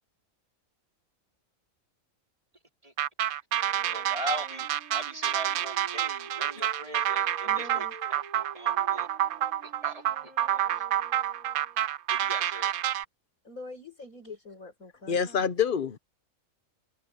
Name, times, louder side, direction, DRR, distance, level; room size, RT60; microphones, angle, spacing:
sound 1, 3.0-13.1, right 11 dB, 70° right, 0.5 m, -28 dB
Wind instrument woodwind instrument, 3.5-11.9, right 2 dB, 85° right, 6.8 m, -50 dB
voice 1, 3.6-9.1 9.6-10.9 12.1-12.8, right 1 dB, 25° right, 4.1 m, -41 dB
voice 2, 7.4-7.9 13.4-15.5, left 2 dB, 85° left, 5.9 m, -45 dB
voice 3, 15.1-16.0, left 7 dB, 45° left, 0.9 m, -26 dB
omnidirectional pair, 1.4 m